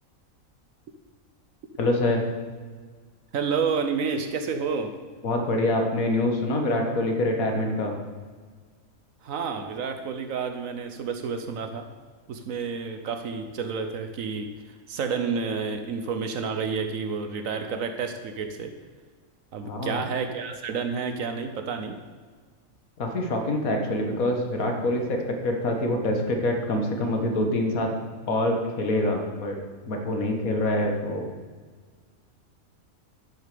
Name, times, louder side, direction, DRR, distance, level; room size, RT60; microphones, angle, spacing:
voice 1, 1.8-2.3 5.2-8.0 19.6-20.0 23.0-27.9 28.3-29.6 29.9-31.3, left 1 dB, 85° left, 3 dB, 1.9 m, -25 dB
voice 2, 3.3-4.9 9.2-11.9 12.3-14.5 14.9-18.8 19.5-22.0, right 5 dB, 75° right, 7 dB, 1.2 m, -30 dB
11.5 x 6.5 x 6.7 m, 1.5 s
omnidirectional pair, 1.4 m